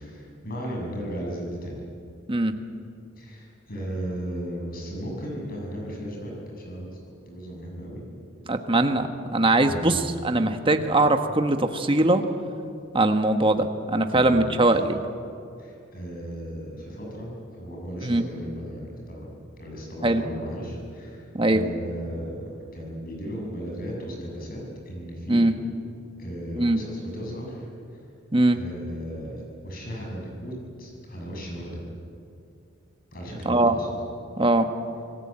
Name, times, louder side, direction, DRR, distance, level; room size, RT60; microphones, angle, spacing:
voice 1, 0.0-1.8 3.2-8.0 9.6-10.0 14.1-14.7 15.6-19.3 19.6-25.5 26.2-28.0 28.5-31.8 33.1-33.9, equal, 45° left, -1 dB, 7.2 m, -36 dB
voice 2, 8.5-12.2 12.9-15.0 18.0-18.3 20.0-20.2 21.3-21.6 25.3-25.6 26.6-26.8 28.3-28.6 33.4-33.8 34.4-34.7, right 2 dB, 25° right, 6 dB, 1.4 m, -21 dB
27.0 x 19.0 x 8.8 m, 2.5 s
head